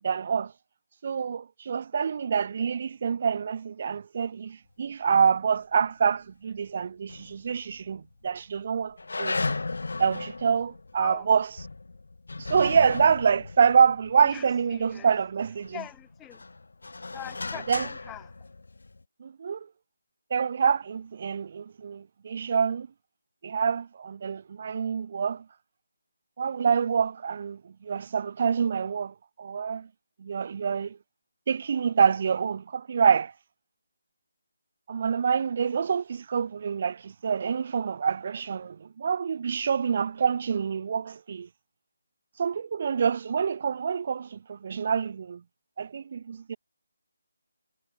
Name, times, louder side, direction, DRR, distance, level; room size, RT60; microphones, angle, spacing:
voice 1, 0.0-0.5 1.0-9.4 10.0-11.5 12.4-15.8 17.7-17.9 19.2-19.7 20.3-22.9 23.4-25.5 26.4-29.9 30.2-31.0 31.5-33.3 34.9-41.5 42.4-45.4 45.8-46.6, right 6 dB, 30° right, 1.9 m, -26 dB
sound 1, 7.1-7.9 8.2-8.3 9.0-15.1 15.6-19.0, left 3 dB, 70° left, 3.0 m, -36 dB
voice 2, 11.0-11.3 14.2-15.1 15.7-16.5 17.1-18.3, left 14 dB, 5° left, 6.1 m, -43 dB
hypercardioid pair, 180°, 0 cm